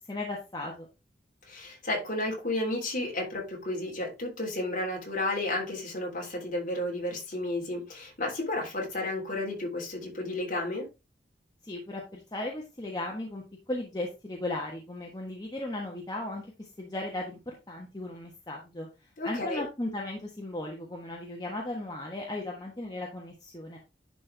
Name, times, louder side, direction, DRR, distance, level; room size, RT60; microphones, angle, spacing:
voice 1, 0.1-0.9 11.6-18.9 19.2-23.8, left 2 dB, 20° left, -2 dB, 1.3 m, -36 dB
voice 2, 1.5-10.9 19.2-19.6, left 2 dB, 45° left, -1 dB, 3.3 m, -32 dB
10.5 x 4.4 x 3.4 m, 0.27 s
head